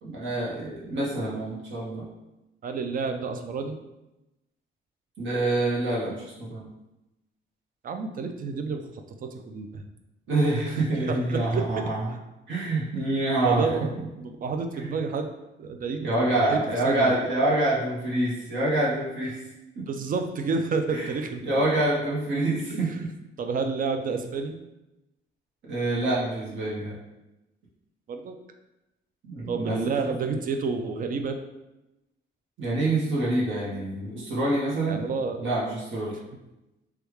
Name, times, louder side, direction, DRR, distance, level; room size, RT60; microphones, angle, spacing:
voice 1, 0.0-2.0 5.2-6.6 10.3-12.0 12.5-13.7 13.9-14.1 14.8-14.9 16.0-19.4 19.8-19.9 20.9-21.1 21.4-22.9 25.7-26.9 29.2-29.8 30.0-30.1 32.6-35.0 35.4-36.1, right 2 dB, 70° right, -6 dB, 1.0 m, -26 dB
voice 2, 2.6-3.8 7.8-8.9 9.2-9.8 11.1-11.8 13.4-13.9 14.2-15.3 15.6-16.1 16.4-17.1 19.8-21.4 23.4-24.5 28.1-28.3 29.5-31.4 34.9-35.4, right 4 dB, 45° right, 6 dB, 0.4 m, -29 dB
3.2 x 2.3 x 3.1 m, 0.96 s
cardioid pair, 90°, 20 cm